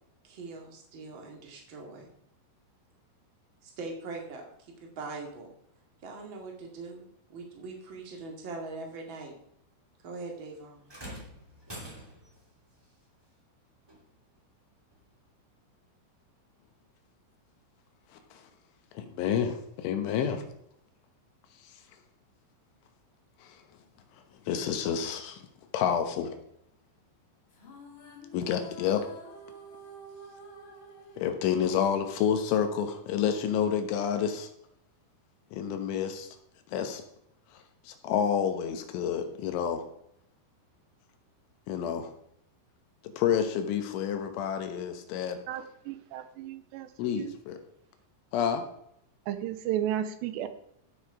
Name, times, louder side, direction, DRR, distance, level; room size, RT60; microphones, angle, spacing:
voice 1, 0.2-2.1 3.6-5.5 6.0-9.3 10.0-10.9, right 3 dB, 40° right, 1 dB, 1.9 m, -42 dB
sound 1, 10.9-12.4 13.9-14.0 14.9-15.0, right 1 dB, 15° right, 0.9 m, -44 dB
voice 2, 19.0-20.4 23.4-23.5 24.5-25.4 25.7-26.4 28.3-29.0 31.2-34.5 35.5-36.3 36.7-37.0 37.9-39.8 41.7-42.1 43.2-45.4 47.0-47.6 48.3-48.6, left 8 dB, 80° left, 7 dB, 3.6 m, -29 dB
sound 2, 27.5-33.0, right 1 dB, 45° left, 1.7 m, -49 dB
voice 3, 45.5-46.9 47.1-47.3 49.3-50.5, right 11 dB, 80° right, 11 dB, 2.7 m, -33 dB
15.0 x 6.7 x 4.9 m, 0.73 s
omnidirectional pair, 5.5 m